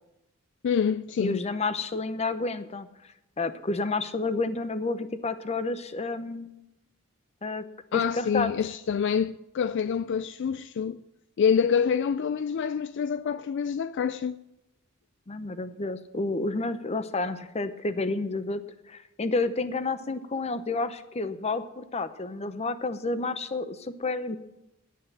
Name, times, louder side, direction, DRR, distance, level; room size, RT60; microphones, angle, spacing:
voice 1, 0.6-1.4 7.9-11.0 11.4-14.4, left 7 dB, 55° left, 0.3 m, -26 dB
voice 2, 1.2-2.9 3.4-6.5 7.4-7.7 7.9-8.5 15.3-18.6 18.9-24.4, left 3 dB, 30° left, 0.7 m, -30 dB
9.3 x 8.0 x 8.8 m
head